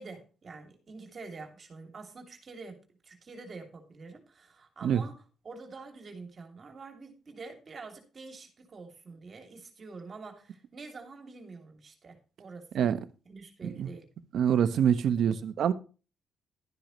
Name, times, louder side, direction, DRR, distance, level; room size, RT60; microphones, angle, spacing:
voice 1, 0.0-2.8 3.0-13.0 13.2-14.1, right 4 dB, 40° right, 4 dB, 2.7 m, -46 dB
voice 2, 14.3-15.7, right 8 dB, 65° right, 13 dB, 0.9 m, -25 dB
12.0 x 10.0 x 3.1 m, 0.35 s
cardioid pair, 90°, 0 cm